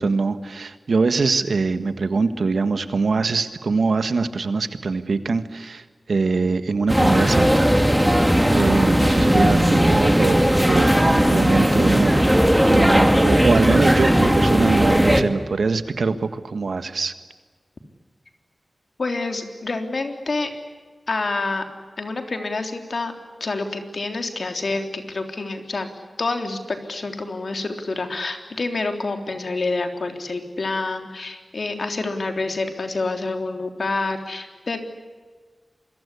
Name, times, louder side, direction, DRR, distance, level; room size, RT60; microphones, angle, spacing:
voice 1, 0.0-7.7 8.5-17.1, right 4 dB, 85° right, 10 dB, 1.6 m, -23 dB
sound 1, 6.9-15.2, equal, 5° right, 2.3 m, -17 dB
voice 2, 19.0-20.5 21.1-21.6 22.0-23.1 23.4-25.9 26.2-34.8, left 3 dB, 65° left, 5 dB, 3.5 m, -27 dB
27.5 x 22.5 x 8.5 m, 1.5 s
wide cardioid pair, 105°, 0 cm